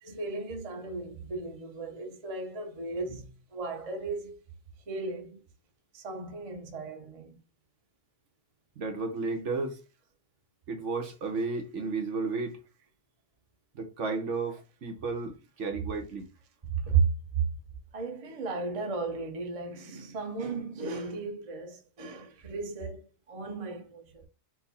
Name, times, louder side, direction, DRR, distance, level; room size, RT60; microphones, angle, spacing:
voice 1, 0.0-4.4 4.9-5.4 5.9-7.4 16.7-17.4 17.9-24.2, right 5 dB, 30° right, 0.8 m, -34 dB
voice 2, 8.8-9.8 10.7-12.6 13.7-16.3, right 3 dB, 65° right, 1.2 m, -33 dB
4.5 x 2.1 x 4.1 m
omnidirectional pair, 1.4 m